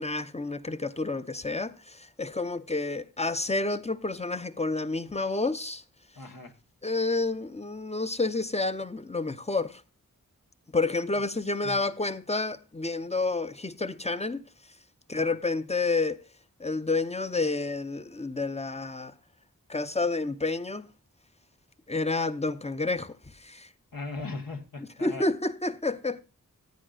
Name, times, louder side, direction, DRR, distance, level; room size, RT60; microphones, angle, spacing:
voice 1, 0.0-5.8 6.8-9.8 10.7-14.4 15.1-16.2 16.6-19.1 19.7-20.9 21.9-23.7 25.0-26.2, left 3 dB, 20° left, 0.6 m, -29 dB
voice 2, 6.1-6.5 11.6-11.8 15.1-15.3 23.9-25.3, left 3 dB, 80° left, 1.5 m, -38 dB
14.5 x 9.3 x 2.5 m
wide cardioid pair, 55°, 33 cm